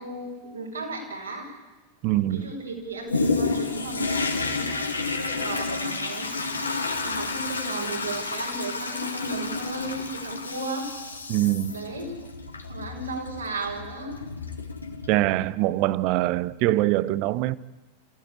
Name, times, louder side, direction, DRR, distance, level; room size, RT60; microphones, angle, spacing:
voice 1, 0.0-1.5 2.3-6.6 7.0-10.9 11.7-12.2 12.7-14.2, right 2 dB, 75° right, 6.4 m, -35 dB
voice 2, 2.0-2.5 11.3-11.8 15.1-17.6, right 16 dB, 45° right, 0.8 m, -23 dB
Toilet flush, 3.1-15.5 16.0-16.1, left 3 dB, 80° left, 2.3 m, -30 dB
26.5 x 16.0 x 8.6 m
figure-of-eight pair, 90°, 0 cm